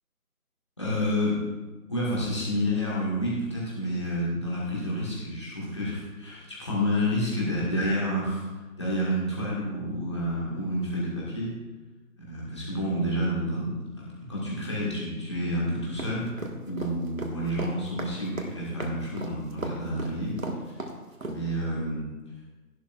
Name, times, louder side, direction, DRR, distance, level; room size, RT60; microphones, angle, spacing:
voice 1, 0.8-1.4 1.9-8.4 8.8-11.5 12.2-16.3 16.6-20.3 21.3-22.1, equal, 20° left, -7 dB, 1.7 m, -29 dB
sound 1, 16.0-21.4, right 2 dB, 60° right, 1.7 m, -35 dB
14.5 x 11.0 x 2.4 m, 1.2 s
figure-of-eight pair, 175°, 46 cm